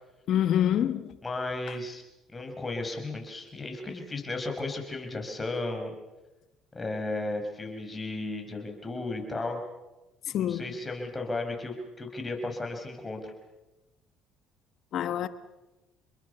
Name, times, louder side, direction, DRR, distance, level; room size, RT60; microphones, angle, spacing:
voice 1, 0.3-1.2 10.3-10.6 14.9-15.3, left 10 dB, 60° left, 1.5 m, -26 dB
voice 2, 1.2-2.0 2.3-5.9 6.7-9.6 10.3-13.3, left 2 dB, 20° left, 6.2 m, -34 dB
28.5 x 22.0 x 7.0 m
supercardioid pair, 75°, 0 cm